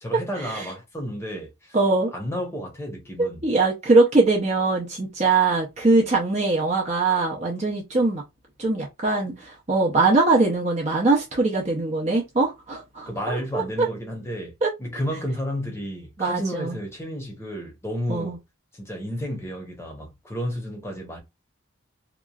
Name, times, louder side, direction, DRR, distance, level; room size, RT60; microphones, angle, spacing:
voice 1, 0.0-1.8 2.1-3.5 13.1-14.5 14.8-18.4 18.7-21.2, equal, 15° left, 0.8 m, -31 dB
voice 2, 1.7-2.1 3.2-8.2 8.6-13.6 14.6-14.7 16.2-16.8 18.1-18.4, right 3 dB, 35° right, 0.6 m, -22 dB
2.9 x 2.3 x 2.3 m
head